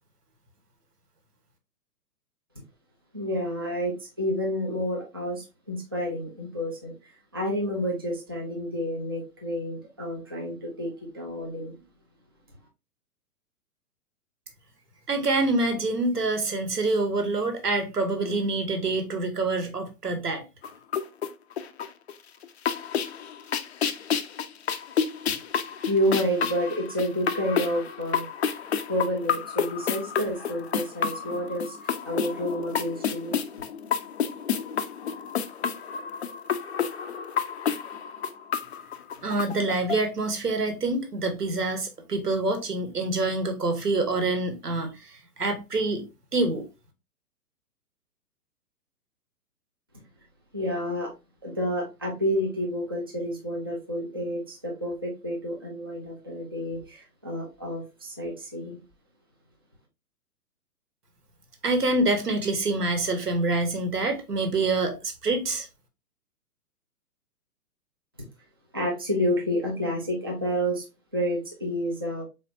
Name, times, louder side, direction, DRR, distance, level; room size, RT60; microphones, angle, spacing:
voice 1, 3.1-11.8 25.9-28.3 28.9-33.4 50.5-51.1 51.4-58.8 68.7-70.8 71.1-72.2, equal, 15° right, 0.3 m, -29 dB
voice 2, 15.1-20.4 39.2-45.1 45.4-46.0 46.3-46.6 61.6-65.7, right 2 dB, 75° right, 1.4 m, -26 dB
sound 1, 20.6-22.1 22.4-40.0, left 7 dB, 45° left, 0.5 m, -30 dB
4.2 x 3.8 x 2.6 m
figure-of-eight pair, 120°, 47 cm